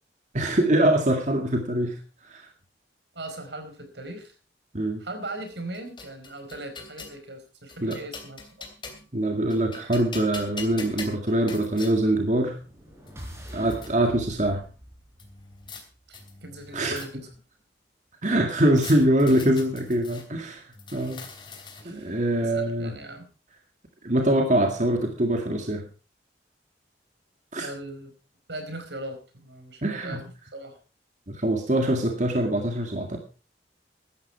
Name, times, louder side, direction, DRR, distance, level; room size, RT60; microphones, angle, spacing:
voice 1, 0.3-2.5 4.7-5.0 7.8-8.0 9.1-12.6 13.5-14.6 16.7-17.0 18.2-21.2 21.8-23.0 24.0-25.9 27.5-27.7 29.8-30.2 31.3-33.2, right 1 dB, 45° right, 4 dB, 2.0 m, -24 dB
voice 2, 3.1-4.4 5.0-8.7 16.1-17.3 21.8-23.3 27.6-28.1 28.5-30.8, right 1 dB, 75° right, 7 dB, 4.6 m, -39 dB
sound 1, 5.5-7.2 7.7-9.2 9.5-11.9 12.7-12.8 13.1-13.9 15.2-15.8 16.1-17.4 18.8-20.3 20.7-22.0, left 4 dB, 25° left, 3.0 m, -42 dB
sound 2, 12.2-16.2, equal, 15° right, 4.6 m, -44 dB
16.0 x 12.5 x 4.5 m, 0.35 s
head